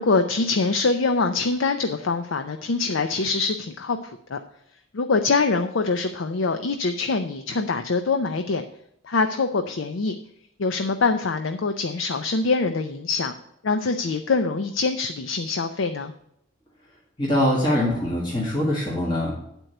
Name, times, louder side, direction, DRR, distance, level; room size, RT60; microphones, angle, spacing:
voice 1, 0.0-4.4 4.9-8.6 9.0-10.2 10.6-13.3 13.6-16.1, left 4 dB, 85° left, 8 dB, 0.5 m, -24 dB
voice 2, 17.2-19.3, left 1 dB, 25° left, -5 dB, 1.9 m, -23 dB
9.1 x 4.5 x 6.5 m, 0.76 s
head